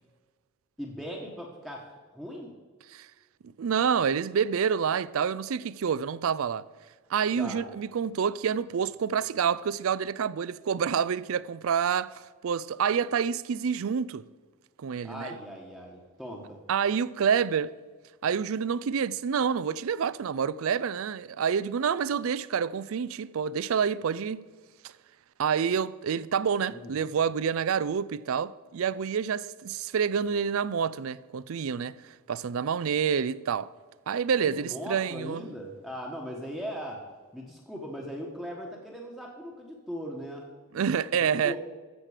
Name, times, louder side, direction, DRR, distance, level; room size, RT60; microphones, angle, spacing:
voice 1, 0.8-1.8 2.1-2.5 7.3-7.6 15.0-16.6 26.7-27.1 34.4-37.0 37.3-40.5 41.4-41.6, equal, ahead, 1.1 m, -39 dB
voice 2, 3.6-6.7 7.1-14.3 14.8-15.3 16.7-17.7 18.2-24.4 25.4-33.7 34.1-35.4 40.7-41.5, right 7 dB, 70° right, 0.4 m, -28 dB
14.0 x 7.5 x 5.0 m
head